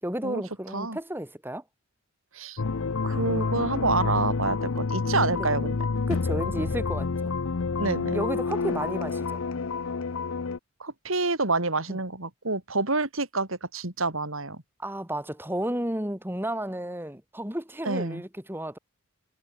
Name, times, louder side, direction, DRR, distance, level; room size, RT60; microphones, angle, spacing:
voice 1, 0.0-1.6 5.3-5.5 6.1-7.3 8.1-9.4 11.9-12.0 14.8-18.8, right 1 dB, 10° right, 5.1 m, -32 dB
sound 1, 2.6-10.6, left 4 dB, 70° left, 0.6 m, -28 dB
voice 2, 3.0-5.8 6.6-6.7 7.8-8.2 10.8-14.6 17.9-18.2, right 3 dB, 70° right, 3.7 m, -28 dB
head